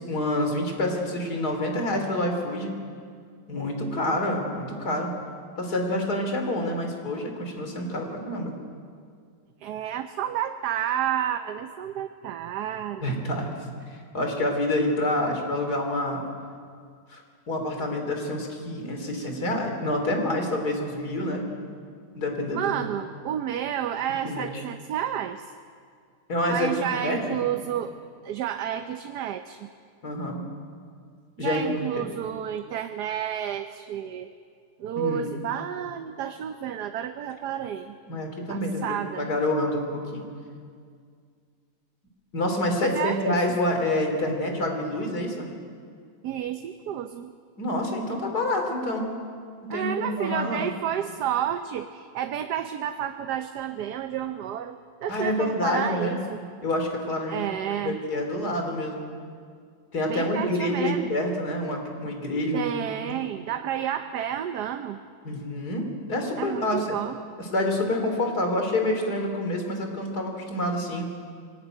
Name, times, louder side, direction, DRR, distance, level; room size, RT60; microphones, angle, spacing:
voice 1, 0.0-2.7 3.5-5.1 5.6-8.5 13.0-13.6 13.9-16.3 17.1-17.2 17.5-21.4 22.1-22.7 24.2-24.6 26.3-27.4 30.0-30.4 31.4-32.1 35.0-35.2 38.1-40.3 42.3-45.5 47.6-49.1 49.6-50.7 55.1-56.2 56.6-59.1 59.9-62.6 65.2-67.0 67.5-71.0, left 1 dB, 60° left, 3 dB, 3.7 m, -27 dB
voice 2, 9.6-13.2 22.5-25.4 26.5-28.0 28.2-29.7 31.4-34.3 34.8-37.9 38.5-39.3 42.8-43.4 46.2-47.3 49.7-56.4 57.3-58.0 60.1-61.1 62.5-65.0 66.4-67.2, right 10 dB, 70° right, 8 dB, 1.3 m, -30 dB
22.0 x 18.5 x 9.1 m, 2.1 s
omnidirectional pair, 1.9 m